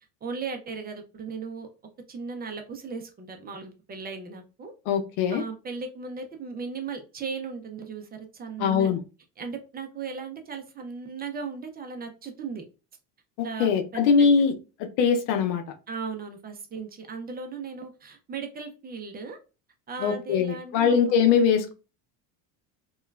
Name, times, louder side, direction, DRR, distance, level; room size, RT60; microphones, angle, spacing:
voice 1, 0.2-1.7 2.1-4.7 5.3-8.9 9.4-12.6 13.4-14.3 15.9-19.4 19.9-21.2, right 5 dB, 25° right, 0.4 m, -37 dB
voice 2, 4.9-5.4 8.6-9.0 13.4-14.5 14.8-15.6 20.0-21.7, left 6 dB, 80° left, 0.7 m, -22 dB
2.9 x 2.3 x 2.2 m
supercardioid pair, 115°, 39 cm